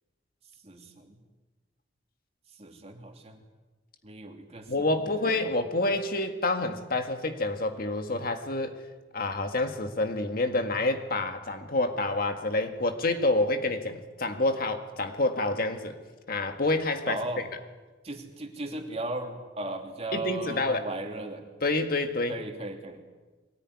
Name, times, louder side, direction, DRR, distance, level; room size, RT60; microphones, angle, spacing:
voice 1, 0.6-1.1 2.6-3.4 4.0-4.7 17.1-17.4 18.0-21.5 22.3-23.0, right 2 dB, 35° right, 3 dB, 2.9 m, -36 dB
voice 2, 4.7-8.8 9.1-16.0 16.3-17.5 20.1-20.8 21.6-22.4, left 2 dB, 50° left, 6 dB, 1.9 m, -28 dB
23.0 x 18.5 x 9.8 m, 1.3 s
head